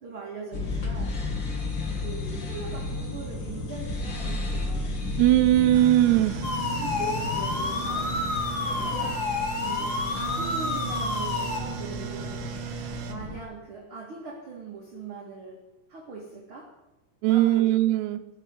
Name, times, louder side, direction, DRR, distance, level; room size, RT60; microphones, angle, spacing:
voice 1, 0.0-1.2 2.0-5.0 6.6-8.2 8.8-9.2 9.6-12.3 13.1-15.6 15.9-16.7 17.3-17.7, right 4 dB, 45° right, -1 dB, 2.0 m, -40 dB
sound 1, 0.5-13.4, left 2 dB, 40° left, 1.9 m, -33 dB
voice 2, 5.2-6.4 17.2-18.2, right 14 dB, 85° right, 6 dB, 2.7 m, -20 dB
sound 2, 5.7-13.1, right 7 dB, 65° right, 2.8 m, -36 dB
sound 3, 6.4-11.6, left 3 dB, 90° left, 0.8 m, -30 dB
15.5 x 6.9 x 9.7 m, 1.0 s
omnidirectional pair, 4.9 m